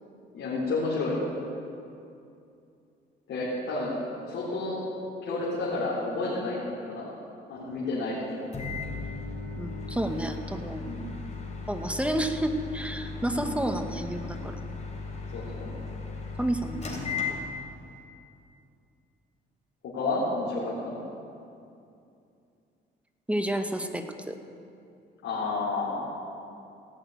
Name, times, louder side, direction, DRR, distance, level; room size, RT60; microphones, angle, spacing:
voice 1, 0.3-1.2 3.3-4.0 4.2-4.8 5.2-7.2 7.5-8.5 10.8-11.0 13.3-13.6 15.3-15.7 19.8-21.0 25.2-26.1, left 3 dB, 80° left, -8 dB, 3.7 m, -31 dB
Microwave oven, 8.5-17.9, left 4 dB, 35° left, 3.2 m, -36 dB
voice 2, 9.6-10.8 11.7-14.6 16.4-17.5 23.3-24.4, right 1 dB, 5° right, 6 dB, 0.9 m, -30 dB
17.0 x 6.5 x 9.2 m, 2.5 s
cardioid pair, 90°, 20 cm